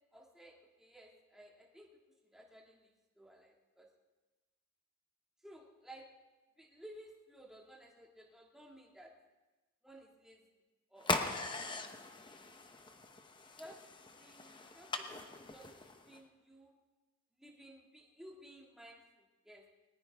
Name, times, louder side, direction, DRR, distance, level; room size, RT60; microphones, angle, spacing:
voice 1, 0.1-1.9 2.2-3.9 5.4-6.1 6.6-9.1 9.8-10.4 10.9-11.6 13.4-13.8 14.2-16.7 17.4-19.7, right 1 dB, ahead, -2 dB, 2.0 m, -56 dB
sound 1, 11.0-16.2, left 3 dB, 20° left, 0.9 m, -41 dB
20.5 x 19.0 x 3.5 m, 1.2 s
head